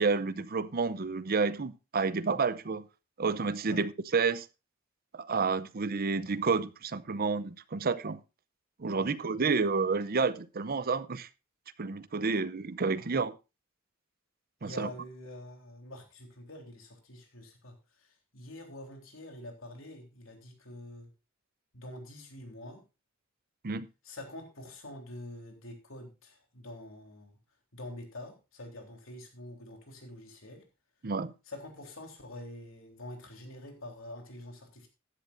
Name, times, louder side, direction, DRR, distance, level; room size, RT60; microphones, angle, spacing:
voice 1, 0.0-2.9 3.2-4.5 5.1-8.2 8.8-11.3 11.8-13.3 14.6-14.9 23.6-23.9 31.0-31.3, right 4 dB, 45° right, 0.6 m, -30 dB
voice 2, 14.6-21.1 21.7-22.8 24.0-27.4 27.7-30.6 31.5-34.9, left 1 dB, 75° left, 3.6 m, -46 dB
14.5 x 11.0 x 2.6 m
head